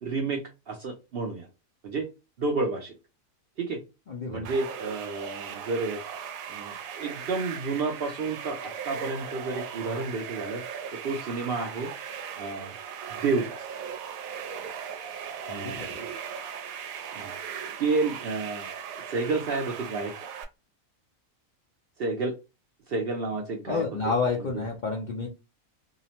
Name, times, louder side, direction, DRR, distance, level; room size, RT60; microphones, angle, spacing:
voice 1, 0.0-1.5 1.8-2.1 2.4-2.9 3.6-3.8 4.3-6.0 6.5-10.6 11.0-11.9 12.4-12.7 13.1-13.6 15.5-16.1 17.1-17.3 17.8-18.7 19.1-20.1 22.0-22.3 22.9-24.1 24.5-24.6, right 3 dB, 65° right, 2 dB, 0.6 m, -30 dB
voice 2, 4.1-4.5 15.5-16.0 23.7-25.3, left 4 dB, 60° left, -1 dB, 0.5 m, -30 dB
sound 1, 4.4-20.4, right 7 dB, 85° right, 1.0 m, -38 dB
2.7 x 2.0 x 2.8 m, 0.27 s
omnidirectional pair, 1.4 m